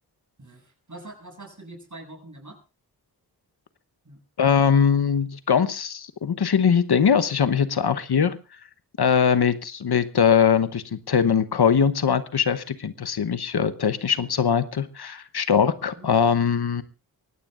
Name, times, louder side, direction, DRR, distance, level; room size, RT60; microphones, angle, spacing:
voice 1, 0.4-2.6 4.0-4.2 15.9-16.2, right 2 dB, 45° right, 2 dB, 7.5 m, -44 dB
voice 2, 4.4-8.4 9.0-16.8, left 7 dB, 70° left, 12 dB, 1.0 m, -21 dB
23.5 x 17.5 x 2.5 m, 0.32 s
cardioid pair, 45°, 40 cm